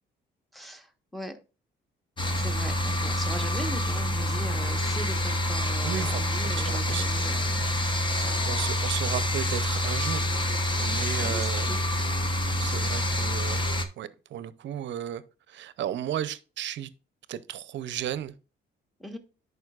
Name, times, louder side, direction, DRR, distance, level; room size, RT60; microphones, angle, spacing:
voice 1, 0.5-1.3 2.3-8.5 11.2-11.8 19.0-19.2, right 1 dB, ahead, 1.1 m, -40 dB
sound 1, 2.2-13.8, left 1 dB, 25° left, 0.9 m, -27 dB
voice 2, 5.8-7.1 7.6-7.7 8.2-10.3 10.8-11.8 12.6-13.6 14.0-15.2 15.5-16.9 17.3-18.3, right 10 dB, 65° right, 0.6 m, -34 dB
11.0 x 4.9 x 2.4 m
cardioid pair, 90°, 20 cm